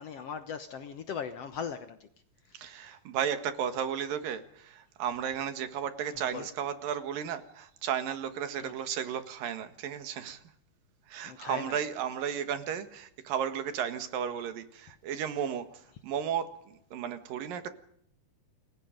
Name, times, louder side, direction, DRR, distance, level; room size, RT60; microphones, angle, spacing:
voice 1, 0.0-2.0 2.6-2.8 6.3-6.5 8.6-8.7 11.3-11.8, left 7 dB, 60° left, 10 dB, 1.7 m, -39 dB
voice 2, 2.5-10.4 11.1-17.7, right 8 dB, 80° right, 10 dB, 3.4 m, -34 dB
28.0 x 21.0 x 5.2 m, 0.67 s
omnidirectional pair, 3.9 m